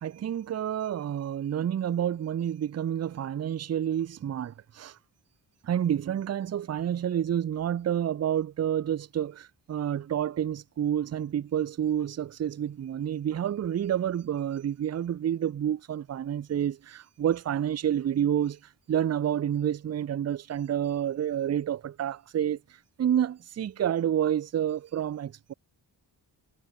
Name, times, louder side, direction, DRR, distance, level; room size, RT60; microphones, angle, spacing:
voice 1, 0.0-5.0 5.6-18.6 18.9-22.6 23.0-25.5, right 10 dB, 35° right, 0.5 m, -29 dB
supercardioid pair, 40°, 50 cm